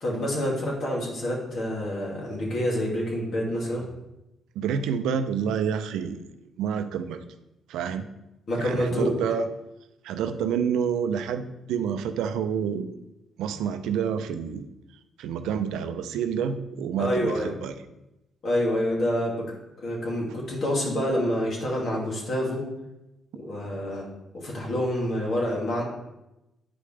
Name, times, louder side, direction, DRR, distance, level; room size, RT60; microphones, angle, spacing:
voice 1, 0.0-3.8 8.5-9.2 17.0-17.5 18.4-19.5 19.8-22.7 23.3-24.1 24.3-25.8, equal, 55° left, -2 dB, 2.5 m, -27 dB
voice 2, 4.6-6.2 6.6-7.2 7.7-8.0 8.5-9.5 10.0-12.9 13.4-14.7 15.2-17.8, right 7 dB, 85° right, 9 dB, 0.5 m, -28 dB
9.5 x 5.1 x 3.3 m, 0.92 s
cardioid pair, 90°, 0 cm